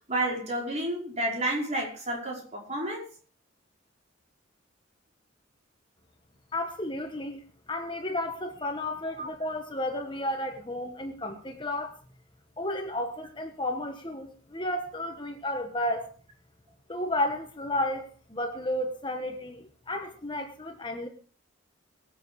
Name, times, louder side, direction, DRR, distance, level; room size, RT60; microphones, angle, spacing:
voice 1, 0.1-3.1 9.2-9.3, right 1 dB, 35° right, 5.1 m, -30 dB
voice 2, 6.5-7.4 7.7-12.0 12.6-16.1 16.9-21.1, left 1 dB, 25° left, 1.3 m, -32 dB
22.5 x 8.0 x 4.9 m
head